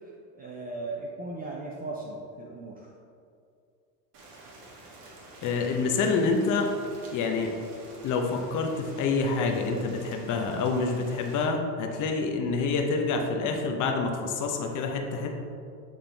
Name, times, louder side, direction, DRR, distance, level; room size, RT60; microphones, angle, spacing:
voice 1, 0.0-2.9, right 2 dB, 20° right, -2 dB, 0.4 m, -38 dB
Rain, 4.1-11.5, right 2 dB, 45° right, 1.4 m, -49 dB
voice 2, 5.4-6.7 7.1-7.5 8.0-15.3, left 4 dB, 40° left, 3 dB, 0.8 m, -27 dB
8.9 x 3.7 x 3.4 m, 2.4 s
supercardioid pair, 115°, 50 cm